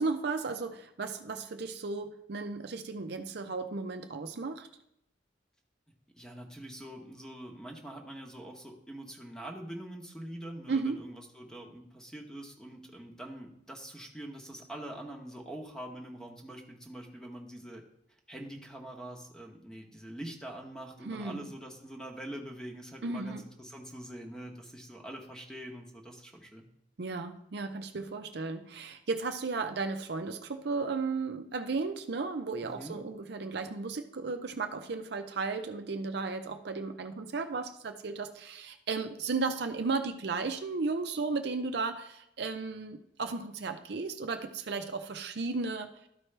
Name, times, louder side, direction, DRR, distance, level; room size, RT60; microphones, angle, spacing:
voice 1, 0.0-4.7 10.7-11.0 21.0-21.5 23.0-23.4 27.0-45.9, right 4 dB, 60° right, 7 dB, 0.6 m, -34 dB
voice 2, 6.2-17.8 18.3-26.7 32.6-33.0, right 1 dB, 5° left, 1 dB, 1.0 m, -44 dB
12.5 x 4.6 x 3.3 m, 0.78 s
head